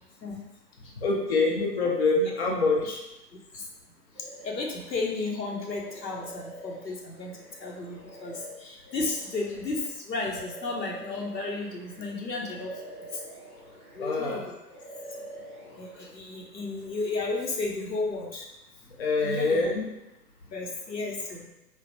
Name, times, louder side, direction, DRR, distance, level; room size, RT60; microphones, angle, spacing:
voice 1, 1.0-3.0 14.0-14.4 19.0-19.9, left 3 dB, 40° left, -2 dB, 0.4 m, -25 dB
sound 1, 4.1-5.1 5.5-12.1 12.4-14.4 14.6-16.1, right 1 dB, ahead, 0.6 m, -46 dB
voice 2, 4.4-7.3 7.6-12.7 14.0-14.5 15.8-18.5 19.2-19.6 20.5-21.5, left 3 dB, 90° left, 0 dB, 0.8 m, -33 dB
3.3 x 2.2 x 2.6 m, 0.91 s
figure-of-eight pair, 125°, 49 cm